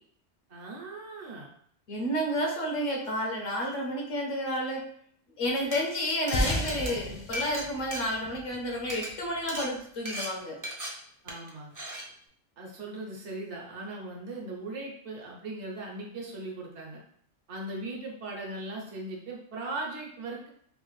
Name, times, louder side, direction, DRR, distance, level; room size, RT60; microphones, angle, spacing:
voice 1, 0.5-1.5 11.2-11.8 12.6-17.0 17.5-20.5, right 2 dB, 65° right, -1 dB, 1.1 m, -39 dB
voice 2, 1.9-4.8 5.4-10.6, equal, 80° left, -1 dB, 1.1 m, -31 dB
Glass, 5.5-5.8 6.3-8.6 8.8-9.1 9.5-9.7 10.1-10.3 10.6-10.9 11.3-11.5 11.8-12.0, equal, 25° right, 0.4 m, -37 dB
sound 1, 6.3-9.1, left 1 dB, 55° left, 0.3 m, -33 dB
3.3 x 2.4 x 3.1 m, 0.65 s
omnidirectional pair, 1.3 m